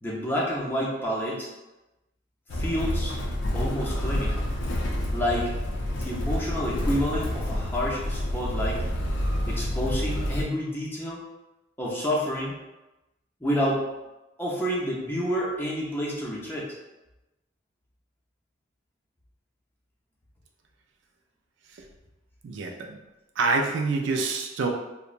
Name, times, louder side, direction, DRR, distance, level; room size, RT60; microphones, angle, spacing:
voice 1, 0.0-1.5 2.5-3.1 3.5-4.5 5.1-5.6 5.9-8.8 9.5-11.2 11.8-12.5 13.4-13.9 14.4-16.7, equal, 10° left, -5 dB, 0.5 m, -29 dB
Motor vehicle (road), 2.5-10.4, left 1 dB, 75° left, 0.5 m, -28 dB
voice 2, 22.4-23.0 23.4-24.7, right 3 dB, 75° right, 3 dB, 0.4 m, -26 dB
2.9 x 2.1 x 2.4 m, 1.0 s
head